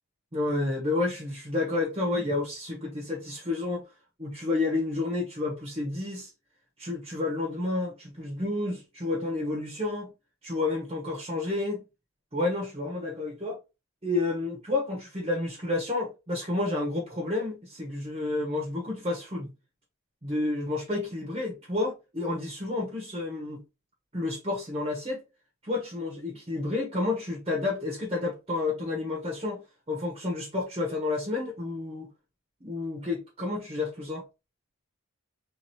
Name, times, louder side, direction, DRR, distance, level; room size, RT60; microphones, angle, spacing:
voice 1, 0.3-3.8 4.2-6.3 6.8-10.1 10.4-11.8 12.3-13.6 14.0-19.5 20.2-23.6 24.1-25.2 25.6-29.6 29.9-32.1 32.6-34.3, left 2 dB, 25° right, 1.2 m, -30 dB
3.5 x 3.2 x 3.4 m
head